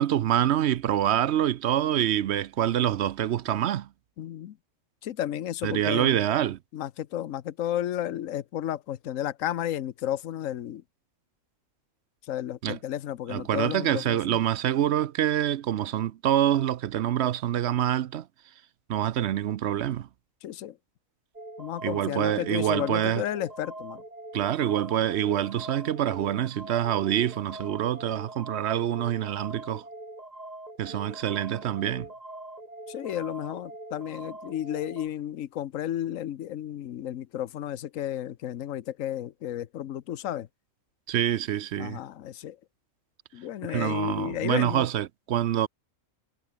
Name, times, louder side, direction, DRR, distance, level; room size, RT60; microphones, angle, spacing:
voice 1, 0.0-3.9 5.6-6.6 12.6-12.8 13.3-18.3 18.9-20.1 21.8-23.2 24.3-29.8 30.8-32.1 41.1-42.0 43.7-45.7, right 11 dB, 65° right, 0.8 m, -26 dB
voice 2, 4.2-4.6 5.0-6.2 6.7-10.8 12.2-14.4 20.4-20.8 21.6-24.0 32.9-40.5 41.8-42.6 43.3-44.9, left 11 dB, 80° left, 1.2 m, -32 dB
sound 1, 21.3-35.1, right 1 dB, 30° right, 3.8 m, -43 dB
omnidirectional pair, 1.4 m